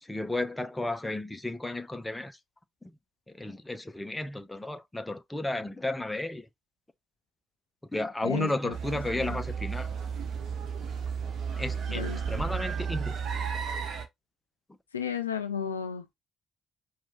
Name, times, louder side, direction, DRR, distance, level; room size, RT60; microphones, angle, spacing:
voice 1, 0.0-2.4 3.3-6.5 7.9-9.9 11.6-13.2, left 2 dB, 10° left, 0.6 m, -33 dB
voice 2, 8.2-9.4 11.9-12.2 14.9-16.1, left 7 dB, 80° left, 0.4 m, -34 dB
sound 1, 8.7-14.0, right 6 dB, 50° right, 0.8 m, -33 dB
4.5 x 2.3 x 3.9 m
figure-of-eight pair, 45°, 0 cm